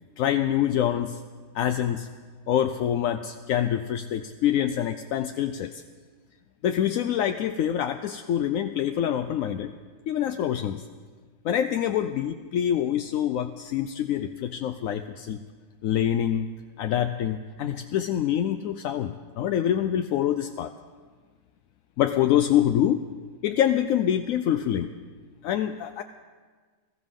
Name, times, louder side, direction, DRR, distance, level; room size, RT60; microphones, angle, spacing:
voice 1, 0.2-1.2 1.5-2.1 2.5-5.8 6.6-9.7 10.1-10.8 11.4-15.4 15.8-16.5 16.8-20.7 22.0-23.0 23.4-24.9 25.4-26.0, left 10 dB, 75° left, 8 dB, 1.0 m, -25 dB
21.0 x 14.0 x 3.7 m, 1.5 s
omnidirectional pair, 1.4 m